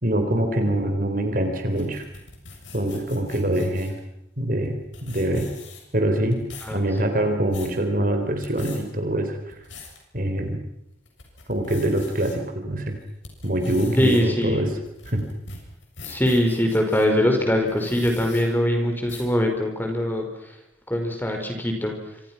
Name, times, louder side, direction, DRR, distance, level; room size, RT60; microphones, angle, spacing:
voice 1, 0.0-2.0 2.7-3.9 4.4-5.5 5.9-6.4 6.7-9.5 10.1-10.6 11.5-13.0 13.4-14.7 15.1-15.3, right 1 dB, 45° right, 6 dB, 4.1 m, -24 dB
sound 1, 1.6-4.0 4.6-4.7 4.9-6.0 6.3-6.8 7.2-7.8 8.3-8.8 9.3-10.0 10.5-10.6 11.0-12.3 12.9-17.1 17.6-18.4 19.1-19.4, left 4 dB, 75° left, 7.3 m, -43 dB
voice 2, 14.0-14.7 16.0-20.6 20.9-22.0, left 1 dB, 10° left, 3 dB, 4.6 m, -22 dB
28.0 x 26.5 x 6.0 m, 0.81 s
head